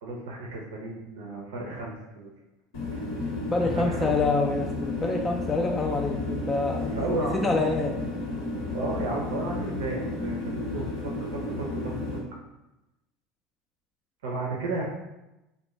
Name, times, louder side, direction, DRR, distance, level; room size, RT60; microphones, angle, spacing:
voice 1, 0.0-2.3 2.9-3.0 3.7-4.1 6.9-7.5 8.7-12.2 14.2-14.8, right 2 dB, 85° right, -2 dB, 0.5 m, -33 dB
sound 1, 2.7-12.2, left 2 dB, 70° left, 1.0 m, -32 dB
voice 2, 3.5-6.9 7.4-7.9, left 3 dB, 20° left, 1 dB, 0.3 m, -26 dB
2.4 x 2.2 x 3.0 m, 0.96 s
hypercardioid pair, 95°, 0 cm